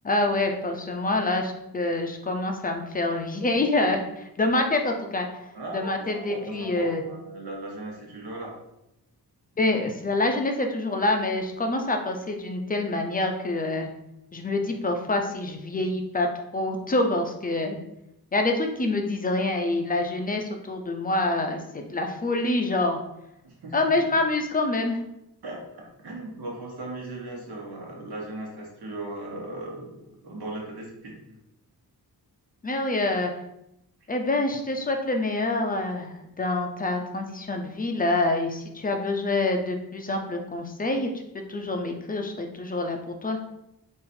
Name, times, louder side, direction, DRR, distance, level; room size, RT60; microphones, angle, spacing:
voice 1, 0.0-5.3 5.7-7.0 9.6-13.9 14.3-16.3 16.5-17.8 18.3-23.0 23.7-25.0 32.6-33.3 34.1-41.1 41.5-43.4, left 2 dB, 25° left, 4 dB, 0.4 m, -26 dB
voice 2, 5.5-8.5 23.4-23.8 25.4-31.2, right 2 dB, 85° right, -1 dB, 1.2 m, -37 dB
3.9 x 2.4 x 4.2 m, 0.83 s
wide cardioid pair, 175°, 38 cm